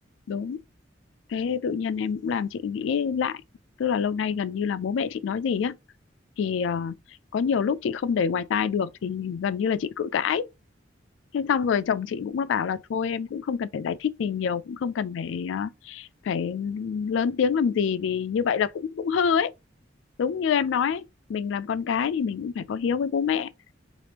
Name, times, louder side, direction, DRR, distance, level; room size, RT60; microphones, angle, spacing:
voice 1, 0.3-0.6 1.3-3.4 3.8-5.8 6.4-7.0 7.3-10.5 11.3-19.5 20.2-23.5, left 7 dB, 75° left, 0.3 m, -26 dB
3.3 x 2.5 x 2.9 m
head